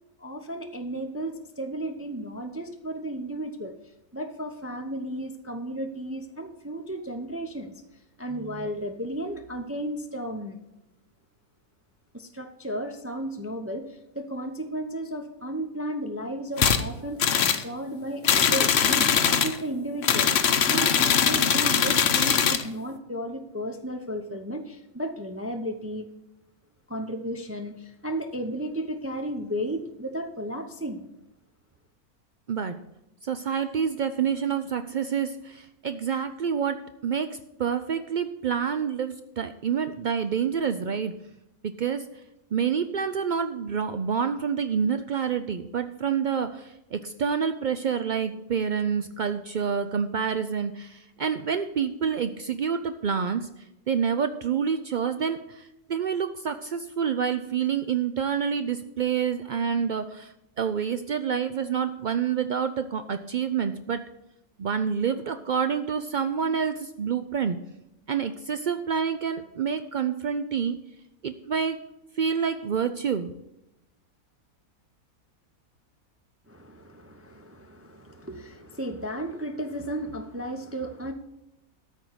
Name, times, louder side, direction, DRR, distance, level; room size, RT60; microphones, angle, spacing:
voice 1, 0.2-3.7 4.1-7.8 8.2-10.6 12.1-26.1 26.9-31.1 76.5-81.1, right 1 dB, 15° right, 5 dB, 0.6 m, -34 dB
sound 1, 16.6-16.8 17.2-17.6 18.2-19.6 20.0-22.6, left 7 dB, 55° left, 0.9 m, -21 dB
voice 2, 33.2-41.1 41.6-42.1 42.5-53.5 53.9-64.0 64.6-67.6 68.1-70.8 71.2-71.8 72.2-73.3, right 7 dB, 90° right, 9 dB, 0.4 m, -28 dB
13.5 x 4.6 x 8.0 m, 0.88 s
omnidirectional pair, 1.5 m